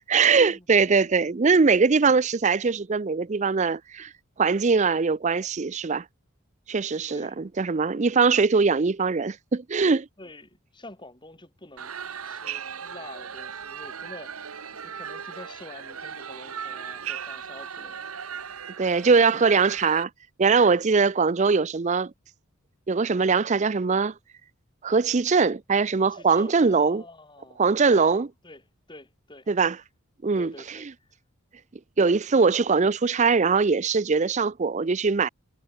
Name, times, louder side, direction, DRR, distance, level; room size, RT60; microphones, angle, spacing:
voice 1, 0.1-4.1 4.4-6.0 6.7-10.1 18.8-20.1 20.4-22.1 22.9-24.1 24.8-27.0 27.6-28.3 29.5-29.8 30.2-30.5 32.0-35.3, right 4 dB, 35° right, 0.5 m, -21 dB
voice 2, 7.1-7.4 10.2-12.0 12.2-18.0 26.0-27.6 27.9-29.5 30.4-31.1, left 2 dB, 20° left, 4.4 m, -47 dB
sound 1, 11.8-20.0, right 7 dB, 85° right, 1.3 m, -37 dB
head